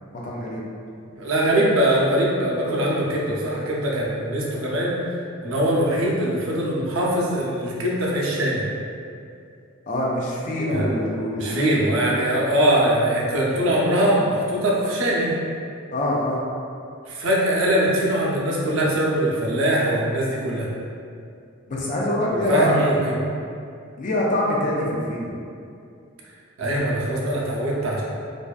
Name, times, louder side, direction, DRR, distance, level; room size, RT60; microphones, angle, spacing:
voice 1, 0.1-0.6 9.9-11.9 15.9-16.4 21.7-22.8 24.0-25.3, left 1 dB, 40° left, -4 dB, 0.3 m, -24 dB
voice 2, 1.2-4.9 5.4-8.6 10.6-10.9 11.4-15.3 17.1-20.7 22.3-23.2 26.6-28.0, right 1 dB, 80° right, -4 dB, 0.5 m, -22 dB
2.5 x 2.2 x 2.3 m, 2.5 s
head